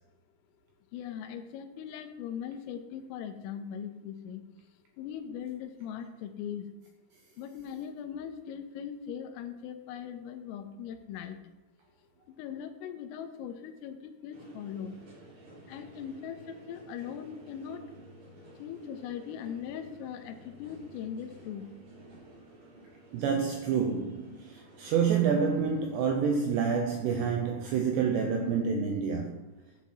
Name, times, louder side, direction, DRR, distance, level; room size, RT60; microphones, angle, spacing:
voice 1, 0.9-4.5 5.0-6.7 7.4-11.4 12.4-14.9 15.7-17.8 18.6-21.7, left 8 dB, 90° left, 3.4 m, -40 dB
sound 1, 14.3-26.2, right 1 dB, 45° right, 4.8 m, -53 dB
voice 2, 23.1-29.4, right 6 dB, 80° right, 2.5 m, -28 dB
10.5 x 5.6 x 6.2 m
omnidirectional pair, 5.8 m